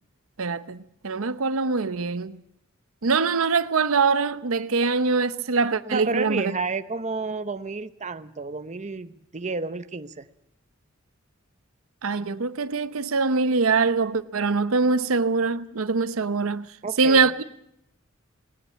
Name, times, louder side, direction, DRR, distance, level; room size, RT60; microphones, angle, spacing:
voice 1, 0.4-2.4 3.0-6.5 12.0-16.7 17.0-17.4, right 4 dB, 85° right, 0.8 m, -23 dB
voice 2, 5.8-10.3 16.8-17.3, right 3 dB, 35° right, 0.8 m, -31 dB
19.0 x 18.5 x 8.4 m
head